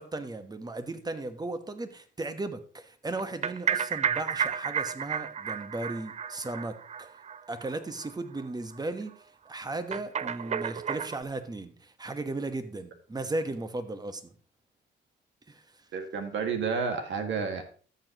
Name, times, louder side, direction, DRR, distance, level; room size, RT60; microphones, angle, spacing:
voice 1, 0.0-7.1 7.5-14.3 15.5-15.6, right 2 dB, 20° right, 10 dB, 1.2 m, -36 dB
sound 1, 3.2-7.7 8.0-8.1 8.4-8.5 8.8-8.9 9.9-11.2, right 7 dB, 35° right, 0.4 m, -32 dB
voice 2, 15.9-17.6, right 5 dB, 70° right, 5 dB, 1.9 m, -30 dB
13.0 x 7.3 x 3.0 m, 0.42 s
cardioid pair, 90°, 20 cm